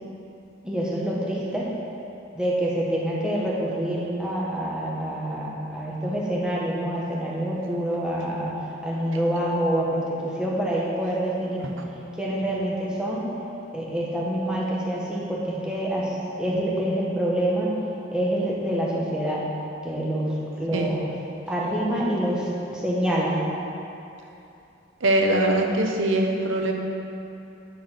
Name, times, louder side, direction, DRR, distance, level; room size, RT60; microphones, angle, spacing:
voice 1, 0.6-1.7 2.3-8.5 8.8-11.7 12.2-13.2 13.7-16.1 16.4-17.7 18.1-19.4 19.8-21.0 21.5-23.4, right 1 dB, 5° right, -6 dB, 1.4 m, -26 dB
voice 2, 25.0-26.7, right 1 dB, 75° right, 2 dB, 0.9 m, -22 dB
10.5 x 4.6 x 5.8 m, 2.7 s
head